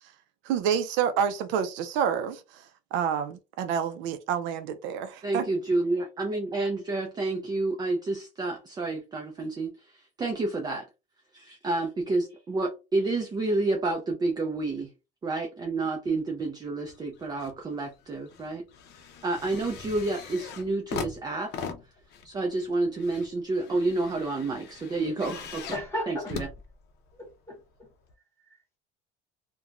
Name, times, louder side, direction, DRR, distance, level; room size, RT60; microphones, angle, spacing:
voice 1, 0.5-2.6 2.9-5.5, right 8 dB, 70° right, 0.5 m, -28 dB
voice 2, 5.2-9.7 10.2-10.8 11.3-14.9 15.2-18.6 19.2-21.5 22.2-25.7 26.1-26.5, right 2 dB, 20° right, 0.5 m, -29 dB
sound 1, 16.8-17.6 17.9-27.3 28.1-28.2, left 5 dB, 55° left, 0.6 m, -41 dB
voice 3, 25.7-26.4 27.2-27.9 28.5-28.8, left 1 dB, 15° left, 1.6 m, -36 dB
2.9 x 2.2 x 2.4 m
cardioid pair, 135°, 20 cm